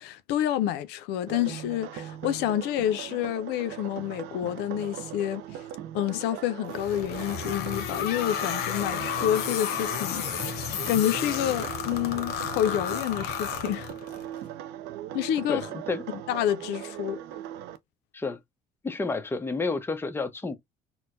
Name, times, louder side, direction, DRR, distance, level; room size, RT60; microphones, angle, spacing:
voice 1, 0.0-5.6 5.9-10.6 10.9-13.9 15.1-15.7 16.3-17.2, left 11 dB, 90° left, 0.4 m, -28 dB
sound 1, 1.3-17.8, right 11 dB, 85° right, 0.5 m, -39 dB
sound 2, 6.7-14.2, left 9 dB, 70° left, 0.8 m, -32 dB
voice 2, 15.5-16.0 18.1-18.4 18.8-20.6, left 3 dB, 15° left, 0.6 m, -30 dB
4.3 x 2.1 x 2.4 m
cardioid pair, 110°, 17 cm